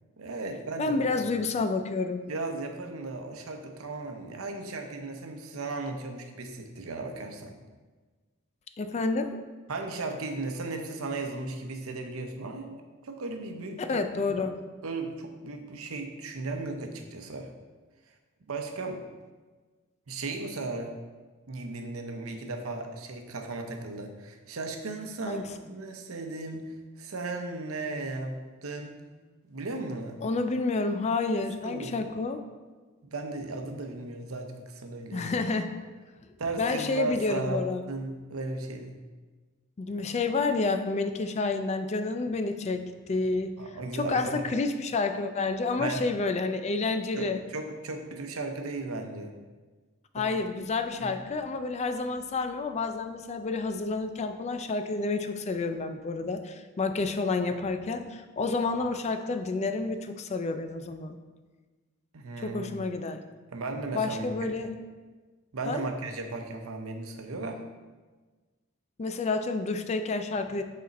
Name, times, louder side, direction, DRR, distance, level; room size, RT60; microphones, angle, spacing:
voice 1, 0.2-1.3 2.3-7.6 9.7-14.4 14.8-17.5 18.5-19.0 20.1-20.9 21.5-28.4 28.6-29.0 29.4-30.2 31.6-32.0 33.1-35.3 36.4-38.9 43.6-44.4 45.8-46.0 47.2-49.3 50.2-50.3 51.0-51.1 62.1-62.8 63.5-64.6 65.5-67.6, right 3 dB, 85° right, 5 dB, 0.7 m, -36 dB
voice 2, 0.8-2.2 8.8-9.5 13.8-14.6 25.2-25.6 30.2-32.4 35.1-35.8 36.6-37.8 39.8-43.5 43.9-47.4 50.1-61.2 62.4-63.2 63.9-64.7 65.7-65.8 69.0-70.6, left 3 dB, 30° left, 8 dB, 0.4 m, -29 dB
6.4 x 4.2 x 4.1 m, 1.3 s
head